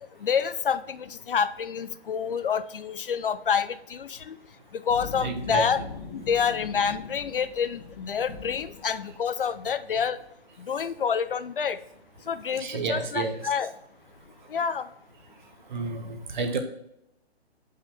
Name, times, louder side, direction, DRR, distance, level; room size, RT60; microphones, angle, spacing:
voice 1, 0.2-4.4 4.7-5.8 6.1-10.2 10.6-11.8 12.3-13.7 14.5-14.9, left 7 dB, 55° left, 13 dB, 0.4 m, -28 dB
sound 1, 4.9-9.3, left 4 dB, 40° left, 1.1 m, -41 dB
voice 2, 5.2-5.7 12.5-13.4 15.7-16.6, right 4 dB, 45° right, 6 dB, 1.1 m, -30 dB
7.2 x 5.5 x 3.5 m, 0.81 s
hypercardioid pair, 160°, 33 cm